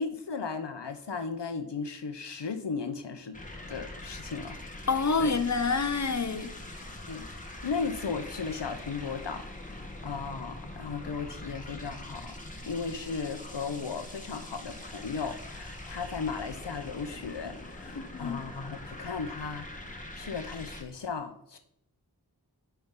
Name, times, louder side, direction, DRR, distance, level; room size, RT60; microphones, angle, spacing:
voice 1, 0.0-3.4 3.7-4.6 5.2-5.4 7.1-7.3 7.6-12.3 12.7-21.6, left 5 dB, 85° left, 8 dB, 0.8 m, -36 dB
sound 1, 3.3-20.8, left 1 dB, 20° left, 1.3 m, -43 dB
voice 2, 4.9-6.5 18.0-18.4, left 4 dB, 45° left, 11 dB, 0.7 m, -27 dB
9.5 x 4.6 x 3.7 m, 0.73 s
wide cardioid pair, 40°, 41 cm